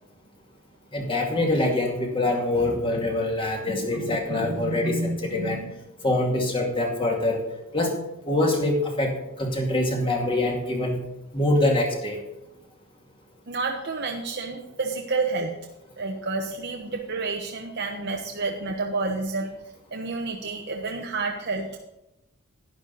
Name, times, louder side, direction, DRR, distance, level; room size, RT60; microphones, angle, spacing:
voice 1, 0.9-5.6 6.0-7.4 7.7-7.9 8.3-9.1 9.4-11.0 11.3-12.2, left 2 dB, 25° left, 1 dB, 2.2 m, -24 dB
voice 2, 3.7-5.7 13.5-15.6 16.0-19.5 19.9-21.8, right 3 dB, 50° right, 1 dB, 1.1 m, -30 dB
11.5 x 10.5 x 4.1 m, 0.90 s
head